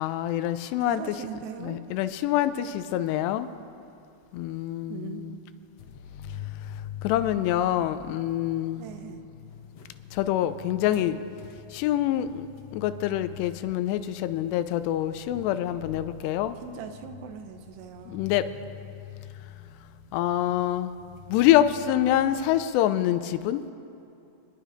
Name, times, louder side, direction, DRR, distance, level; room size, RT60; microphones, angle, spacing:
voice 1, 0.0-1.0 1.6-3.5 4.3-5.4 7.0-8.9 10.1-11.2 11.7-12.5 12.7-16.6 18.1-18.5 20.1-20.9 21.3-23.6, left 12 dB, 90° left, 11 dB, 2.8 m, -26 dB
voice 2, 0.8-1.8 4.9-5.4 8.7-9.2 16.6-18.3, right 7 dB, 85° right, 7 dB, 3.1 m, -40 dB
sound 1, 5.8-22.6, left 9 dB, 75° left, 1.5 m, -45 dB
28.0 x 10.0 x 5.1 m, 2.7 s
omnidirectional pair, 4.8 m